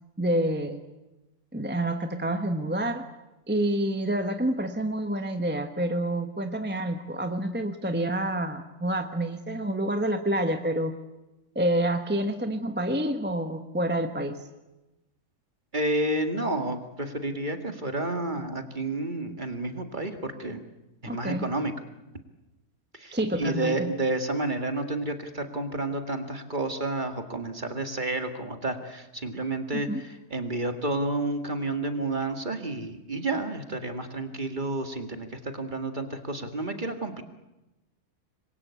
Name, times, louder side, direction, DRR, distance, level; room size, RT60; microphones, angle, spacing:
voice 1, 0.2-0.8 1.5-3.1 3.5-11.0 11.5-14.4 21.1-21.5 23.1-23.9 29.7-30.0, right 1 dB, 5° right, 6 dB, 1.1 m, -28 dB
voice 2, 15.7-20.6 21.0-21.7 22.9-37.2, right 2 dB, 30° right, 6 dB, 2.1 m, -30 dB
27.0 x 22.5 x 8.4 m, 1.0 s
omnidirectional pair, 1.7 m